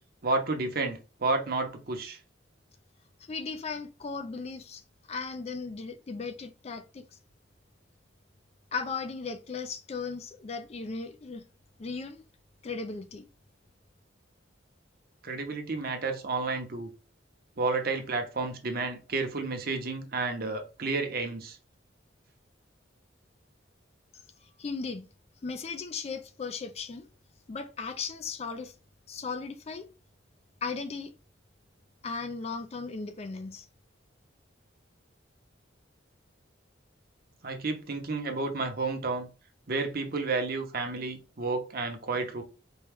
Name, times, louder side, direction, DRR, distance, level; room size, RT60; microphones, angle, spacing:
voice 1, 0.2-2.2 15.2-16.9 17.6-21.6 37.4-39.3 39.7-42.4, right 3 dB, 50° right, 0.8 m, -31 dB
voice 2, 3.3-4.8 5.1-7.0 8.7-11.5 11.8-12.2 12.6-13.3 24.4-25.1 25.4-27.1 27.5-28.8 29.1-29.9 30.6-31.1 32.0-33.7, left 4 dB, 35° left, 0.4 m, -36 dB
4.5 x 2.2 x 3.4 m
head